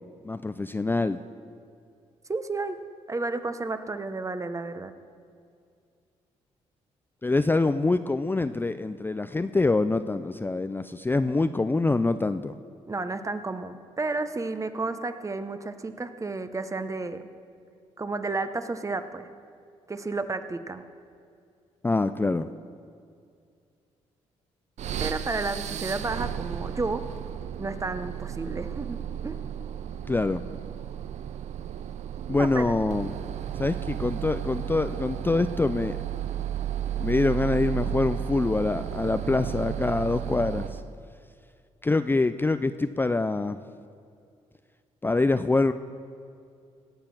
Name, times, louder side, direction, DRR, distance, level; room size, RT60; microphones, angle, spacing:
voice 1, 0.2-1.2 7.2-12.6 21.8-22.5 30.1-30.4 32.3-33.1 33.6-36.0 37.0-40.8 41.8-43.6 45.0-45.7, left 3 dB, 15° left, 11 dB, 0.4 m, -25 dB
voice 2, 2.3-2.8 3.1-4.9 12.9-17.3 18.0-19.3 19.9-20.8 25.0-27.0 27.6-29.0 29.2-29.4 32.4-32.7, right 3 dB, 25° right, 10 dB, 0.9 m, -32 dB
sound 1, 24.8-40.9, right 10 dB, 60° right, 0.6 m, -33 dB
17.5 x 6.9 x 5.9 m, 2.3 s
supercardioid pair, 60°, 13 cm